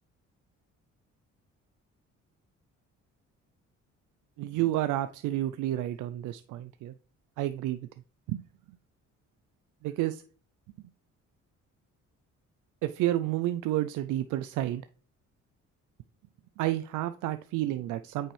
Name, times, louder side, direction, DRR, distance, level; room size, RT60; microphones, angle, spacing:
voice 1, 4.4-6.9 7.4-7.9 8.3-8.4 9.8-10.2 12.8-14.8 16.6-18.3, right 14 dB, 90° right, 11 dB, 0.5 m, -30 dB
8.8 x 5.4 x 3.3 m, 0.42 s
cardioid pair, 90°, 30 cm